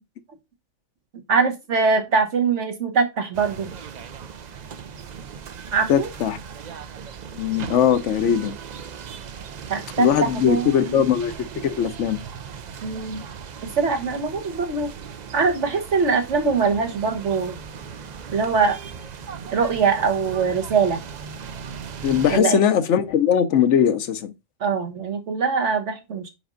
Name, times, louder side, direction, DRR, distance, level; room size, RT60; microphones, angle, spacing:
voice 1, 1.3-3.7 5.7-6.1 9.7-11.0 12.8-13.2 13.6-14.9 15.3-17.6 18.3-18.8 19.5-21.0 22.3-22.6 24.6-26.3, right 5 dB, 75° right, 1.5 m, -22 dB
sound 1, 3.3-22.4, right 6 dB, 50° right, 0.5 m, -38 dB
voice 2, 5.9-6.4 7.4-8.6 10.0-12.2 22.0-24.3, left 9 dB, 80° left, 1.1 m, -20 dB
5.2 x 5.1 x 3.8 m
omnidirectional pair, 1.2 m